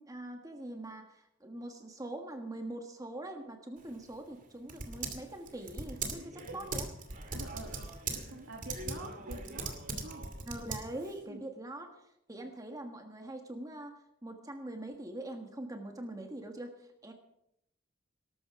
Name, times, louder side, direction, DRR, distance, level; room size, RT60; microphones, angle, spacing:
voice 1, 0.0-6.9 10.5-13.9 14.2-17.1, right 1 dB, 20° right, 4 dB, 1.4 m, -43 dB
Typing, 3.8-11.2, right 3 dB, 40° right, 2.5 m, -41 dB
voice 2, 6.2-6.7 7.1-10.3 11.3-11.4 12.3-12.4, right 2 dB, 85° right, 2 dB, 2.0 m, -48 dB
19.0 x 12.5 x 4.8 m, 0.80 s
head